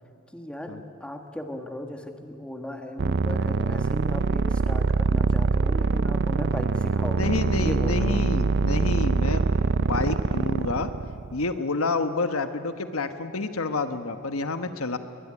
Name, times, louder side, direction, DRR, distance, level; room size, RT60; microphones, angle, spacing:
voice 1, 0.3-8.2, left 1 dB, 5° left, 4 dB, 1.6 m, -36 dB
sound 1, 3.0-11.4, right 4 dB, 55° right, 0.5 m, -24 dB
voice 2, 7.2-9.4 9.8-10.9 11.3-15.0, left 3 dB, 80° left, 9 dB, 1.3 m, -28 dB
21.5 x 21.0 x 9.9 m, 2.5 s
head